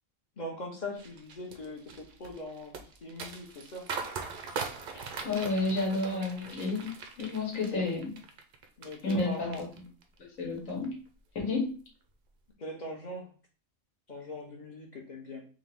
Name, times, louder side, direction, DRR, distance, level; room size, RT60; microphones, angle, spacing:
voice 1, 0.4-3.9 7.7-7.8 8.8-9.6 12.6-13.3 14.1-15.5, left 1 dB, 45° left, 0 dB, 0.7 m, -41 dB
sound 1, 1.0-9.2 9.5-10.2 10.6-10.8, right 5 dB, 60° right, 0.5 m, -41 dB
voice 2, 5.2-6.9 7.2-8.1 9.0-9.5 10.4-11.0 11.3-11.7, left 3 dB, 85° left, -1 dB, 1.6 m, -30 dB
3.6 x 2.5 x 3.3 m, 0.39 s
omnidirectional pair, 1.3 m